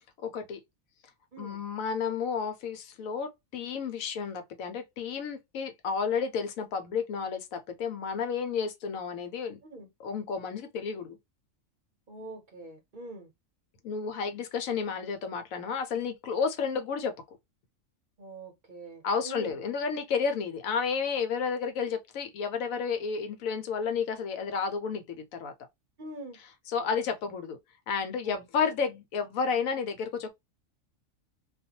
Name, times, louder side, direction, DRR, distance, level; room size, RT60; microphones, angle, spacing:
voice 1, 0.2-0.6 1.4-9.6 10.0-11.2 13.8-17.1 19.0-25.5 26.7-27.6 27.9-30.3, left 6 dB, 90° left, 1.1 m, -31 dB
voice 2, 12.1-13.3 18.2-19.5 26.0-26.4 28.2-28.7, right 2 dB, 45° right, 0.7 m, -44 dB
2.5 x 2.3 x 2.7 m
omnidirectional pair, 1.4 m